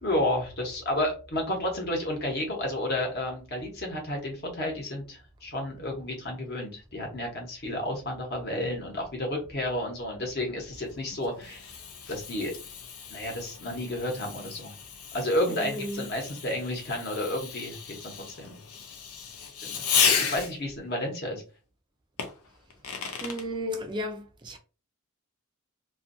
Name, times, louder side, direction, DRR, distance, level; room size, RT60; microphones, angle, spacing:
voice 1, 0.0-11.6 12.1-12.5 13.1-14.7 15.1-18.1 18.4-18.6 19.6-21.4, left 1 dB, 45° left, 1.0 m, -31 dB
Fireworks, 10.8-20.8 22.2-23.5, left 7 dB, 85° left, 0.6 m, -33 dB
voice 2, 15.5-16.1 23.2-24.6, equal, 20° right, 0.3 m, -34 dB
2.6 x 2.5 x 2.6 m
head